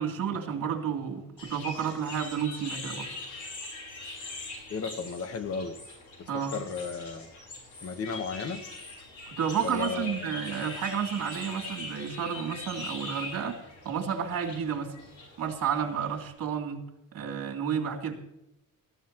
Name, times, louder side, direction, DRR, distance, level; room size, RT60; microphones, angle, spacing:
voice 1, 0.0-3.1 6.3-6.5 9.3-13.6 13.8-14.9 15.4-16.8 17.1-18.2, right 7 dB, 75° right, 2 dB, 2.9 m, -31 dB
sound 1, 1.4-16.3, left 2 dB, 60° left, 5.3 m, -42 dB
voice 2, 4.7-5.7 6.2-7.3 7.8-8.6 9.6-10.3, left 5 dB, 45° left, 9 dB, 1.2 m, -34 dB
19.5 x 14.5 x 3.0 m, 0.85 s
wide cardioid pair, 165°, 33 cm